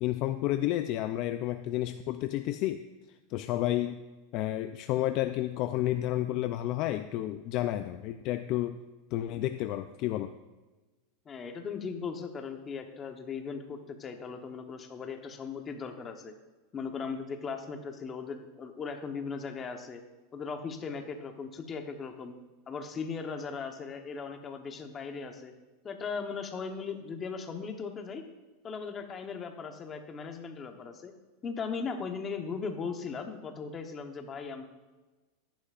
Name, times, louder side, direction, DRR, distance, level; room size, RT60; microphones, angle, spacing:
voice 1, 0.0-2.8 3.3-4.0 4.3-8.8 9.1-10.3, left 14 dB, 45° left, 9 dB, 0.4 m, -31 dB
voice 2, 11.2-16.3 16.7-20.0 20.3-22.4 22.7-25.5 25.8-28.3 28.6-31.1 31.4-34.7, left 5 dB, 20° left, 5 dB, 1.0 m, -38 dB
14.5 x 10.5 x 2.5 m, 1.2 s
supercardioid pair, 145°, 0 cm